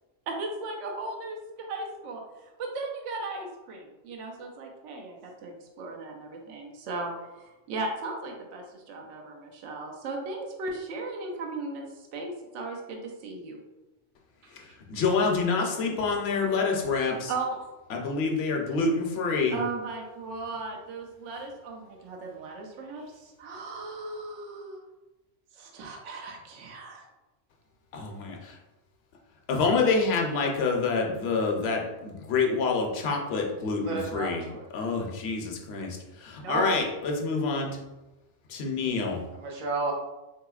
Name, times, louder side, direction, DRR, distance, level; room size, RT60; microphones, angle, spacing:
voice 1, 0.3-7.1 7.4-13.6 14.5-14.6 17.3-17.6 19.5-24.8 25.5-27.1 36.4-36.7, right 3 dB, 75° right, 1 dB, 0.9 m, -36 dB
voice 2, 14.9-17.3 17.9-19.6 27.9-28.5 29.5-34.4 34.7-37.8 38.5-39.2, left 4 dB, 65° left, 1 dB, 0.8 m, -27 dB
voice 3, 33.8-34.7 39.3-39.9, right 3 dB, 45° right, -1 dB, 0.4 m, -32 dB
3.8 x 2.8 x 2.3 m, 1.0 s
omnidirectional pair, 1.3 m